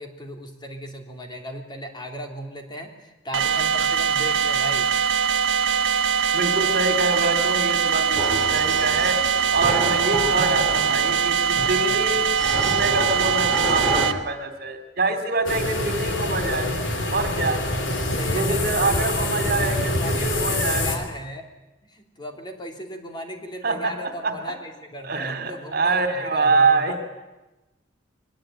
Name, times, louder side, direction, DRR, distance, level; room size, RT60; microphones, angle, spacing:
voice 1, 0.0-4.9 18.0-21.5 21.8-27.0, equal, 25° left, 3 dB, 3.2 m, -36 dB
sound 1, 3.3-14.1, right 7 dB, 80° right, 1.3 m, -22 dB
voice 2, 6.3-9.2 9.5-12.3 12.6-16.7 17.1-17.6 18.3-20.8 23.6-23.9 24.2-24.3 25.0-27.1, right 3 dB, 55° right, 8 dB, 3.1 m, -25 dB
sound 2, 8.2-14.1, right 1 dB, 5° left, 3.7 m, -29 dB
sound 3, 15.4-21.0, left 2 dB, 75° left, 3.9 m, -25 dB
23.5 x 20.5 x 9.3 m, 1.0 s
head